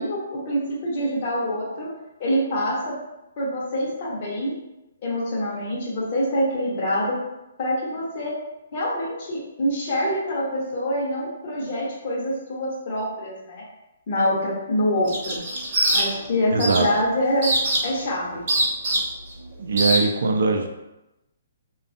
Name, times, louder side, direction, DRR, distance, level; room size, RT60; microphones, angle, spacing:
voice 1, 0.0-1.9 2.2-3.0 3.4-4.5 5.0-7.2 7.6-8.4 8.7-13.6 14.1-15.4 15.9-17.5 17.8-18.4, equal, 40° left, -6 dB, 0.8 m, -25 dB
sound 1, 15.0-16.3 16.6-16.9 17.4-18.0 18.5-19.3 19.8-20.0, right 1 dB, 45° right, 0.9 m, -22 dB
voice 2, 16.5-16.9 19.6-20.7, right 4 dB, 75° right, 4 dB, 0.4 m, -21 dB
2.5 x 2.3 x 2.5 m, 0.95 s
hypercardioid pair, 160°, 0 cm